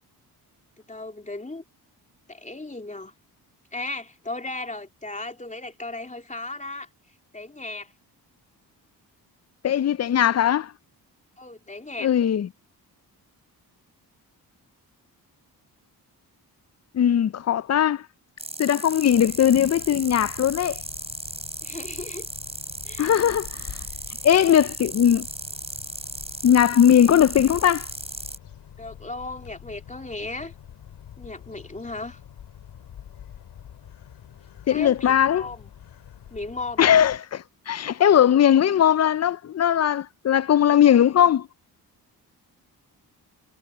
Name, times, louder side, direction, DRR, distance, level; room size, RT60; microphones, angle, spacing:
voice 1, 0.9-1.6 2.3-3.1 3.7-6.9 7.3-7.9 11.4-12.1 21.6-22.3 22.8-23.2 28.8-30.5 31.2-32.2 34.6-35.7 36.3-36.9, left 2 dB, 20° left, 3.4 m, -36 dB
voice 2, 9.6-10.7 12.0-12.5 16.9-18.0 18.6-20.8 23.0-23.6 24.2-25.3 26.4-27.9 34.7-35.4 36.8-41.5, left 9 dB, 40° left, 0.5 m, -19 dB
sound 1, 18.4-28.4, right 2 dB, 15° right, 3.9 m, -36 dB
sound 2, 19.1-37.2, left 9 dB, 80° left, 3.8 m, -45 dB
cardioid pair, 70°, 40 cm